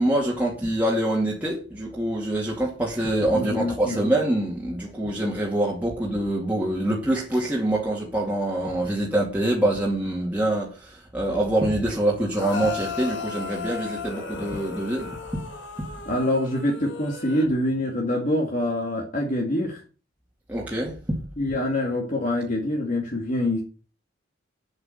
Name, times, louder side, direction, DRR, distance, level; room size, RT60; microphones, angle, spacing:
voice 1, 0.0-15.4 20.5-21.2, right 1 dB, 10° right, 2.3 m, -25 dB
voice 2, 3.3-4.0 16.1-19.8 21.4-23.6, left 1 dB, 40° left, 2.3 m, -25 dB
sound 1, 12.3-17.5, left 5 dB, 60° left, 2.3 m, -35 dB
8.0 x 8.0 x 7.9 m
head